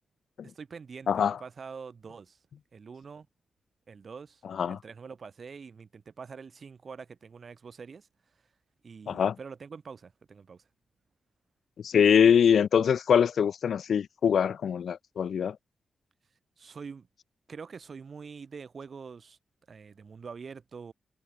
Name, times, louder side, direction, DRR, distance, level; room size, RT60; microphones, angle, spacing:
voice 1, 0.4-2.4 2.7-3.3 3.9-4.4 4.7-8.1 8.8-10.6 16.6-17.1 17.5-19.4 19.7-20.9, right 5 dB, 55° right, 4.2 m, -45 dB
voice 2, 1.1-1.4 4.4-4.8 9.1-9.4 11.8-15.6, left 7 dB, 80° left, 0.5 m, -23 dB
cardioid pair, 95°, 0 cm